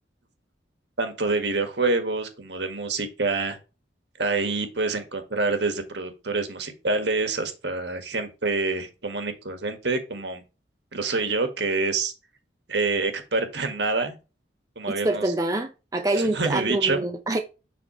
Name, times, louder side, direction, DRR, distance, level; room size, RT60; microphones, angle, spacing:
voice 1, 1.0-3.6 4.2-10.4 10.9-12.1 12.7-14.1 14.7-15.3 16.2-17.0, right 3 dB, 65° right, 1.7 m, -26 dB
voice 2, 14.9-17.4, right 2 dB, 20° right, 0.6 m, -26 dB
7.5 x 5.6 x 3.1 m
head